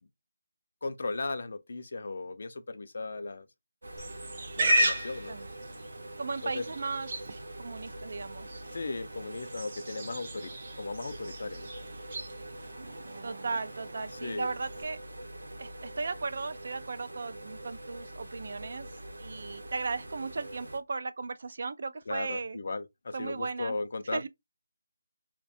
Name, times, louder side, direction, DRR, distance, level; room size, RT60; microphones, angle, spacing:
voice 1, 0.8-3.5 4.6-5.4 6.4-6.7 8.7-10.5 10.8-11.7 14.2-14.5 22.1-24.3, left 3 dB, 55° left, 0.4 m, -36 dB
sound 1, 3.8-20.8, right 1 dB, 85° right, 0.8 m, -44 dB
Livestock farm animals working animals, 4.0-14.8, right 1 dB, 35° right, 0.7 m, -35 dB
voice 2, 6.2-8.6 13.2-15.0 15.6-18.9 19.2-22.6 23.1-23.7 24.1-24.3, right 4 dB, 55° right, 0.3 m, -36 dB
2.4 x 2.2 x 2.6 m
figure-of-eight pair, 165°, 0 cm